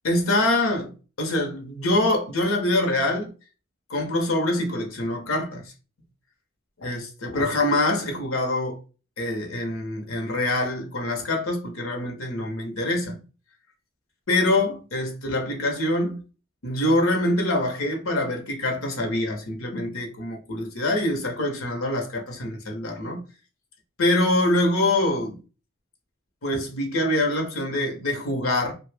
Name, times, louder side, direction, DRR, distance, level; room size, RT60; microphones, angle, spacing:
voice 1, 0.0-3.3 3.9-5.7 6.8-8.8 9.2-13.2 14.3-16.2 16.6-23.2 24.0-25.4 26.4-28.7, left 1 dB, 80° left, 0.9 m, -25 dB
2.8 x 2.3 x 3.4 m
head